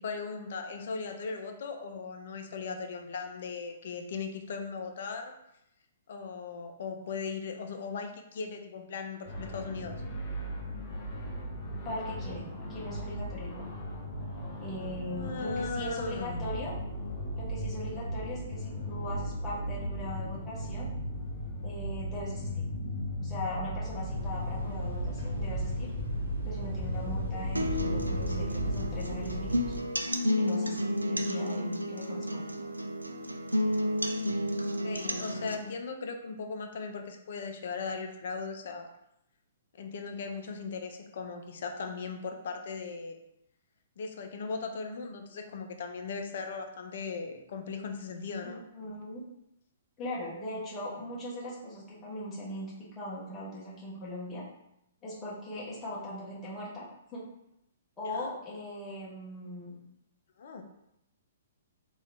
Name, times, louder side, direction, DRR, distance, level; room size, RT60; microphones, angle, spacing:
voice 1, 0.0-5.4 6.1-9.9 14.8-16.5 34.8-38.9 39.7-43.2 44.0-48.6 58.1-58.3 60.4-60.6, left 4 dB, 55° left, 5 dB, 0.5 m, -38 dB
sound 1, 9.3-28.8, equal, 35° left, 1.1 m, -37 dB
voice 2, 11.7-13.6 14.6-16.7 17.3-20.9 21.6-22.7 23.2-25.9 26.4-29.6 30.4-32.5 48.4-49.2 50.0-54.4 55.0-57.2 58.0-59.8, left 1 dB, 15° left, -8 dB, 1.4 m, -40 dB
sound 2, 24.1-29.8, equal, 65° right, 0.9 m, -36 dB
sound 3, 27.6-35.5, left 1 dB, 85° right, 0.4 m, -31 dB
3.6 x 3.0 x 3.5 m, 0.82 s
figure-of-eight pair, 120°, 0 cm